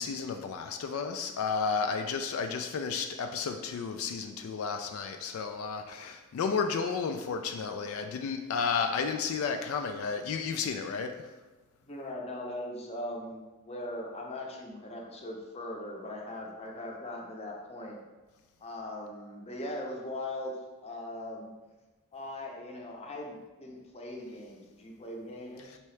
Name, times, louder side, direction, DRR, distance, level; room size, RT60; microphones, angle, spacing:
voice 1, 0.0-11.1, left 5 dB, 85° left, 6 dB, 0.3 m, -32 dB
voice 2, 11.8-18.0 18.6-20.5 20.8-21.5 22.1-25.8, left 1 dB, 30° left, -1 dB, 0.6 m, -40 dB
4.5 x 2.8 x 3.2 m, 1.2 s
head